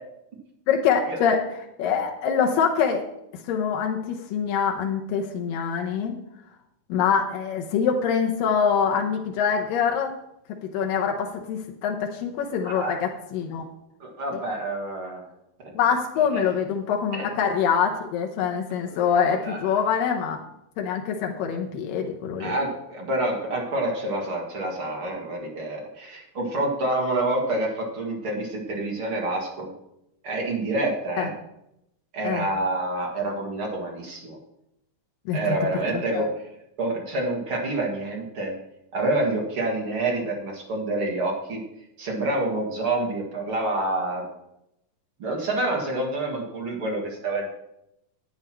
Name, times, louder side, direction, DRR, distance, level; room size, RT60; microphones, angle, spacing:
voice 1, 0.7-1.4 1.8-3.0 3.5-6.2 6.9-10.1 10.7-13.6 15.7-20.4 20.8-22.6 31.2-31.3 32.2-32.5 35.3-35.6 35.9-36.3, left 7 dB, 85° left, 2 dB, 2.7 m, -24 dB
voice 2, 12.6-13.0 14.0-15.2 15.6-15.7 16.3-16.4 17.1-17.3 18.8-19.6 22.4-29.7 30.2-31.3 32.1-34.4 35.3-36.3 36.8-38.5 38.9-41.6 42.0-44.2 45.2-47.5, right 2 dB, 45° right, -1 dB, 2.5 m, -27 dB
10.5 x 9.4 x 4.5 m, 0.81 s
omnidirectional pair, 3.9 m